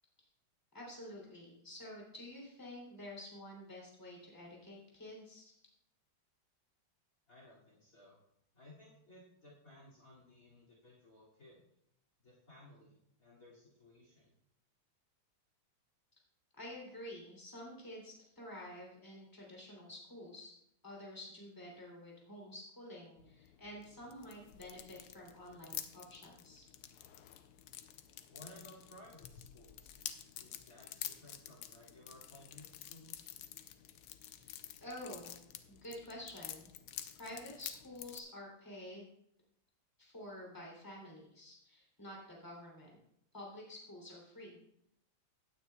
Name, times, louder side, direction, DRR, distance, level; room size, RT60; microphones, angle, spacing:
voice 1, 0.7-5.5 16.6-20.5 20.8-26.6 34.3-34.5 34.8-35.4 35.7-36.7 37.1-39.1 40.0-43.0 43.3-44.6, left 1 dB, 10° left, -3 dB, 3.0 m, -49 dB
voice 2, 7.3-8.2 8.5-11.6 12.2-14.3 28.3-30.0 30.4-33.3, left 1 dB, 40° left, -3 dB, 2.9 m, -58 dB
sound 1, 23.2-38.2, left 11 dB, 90° left, 1.6 m, -49 dB
16.5 x 9.3 x 2.3 m, 0.75 s
omnidirectional pair, 2.4 m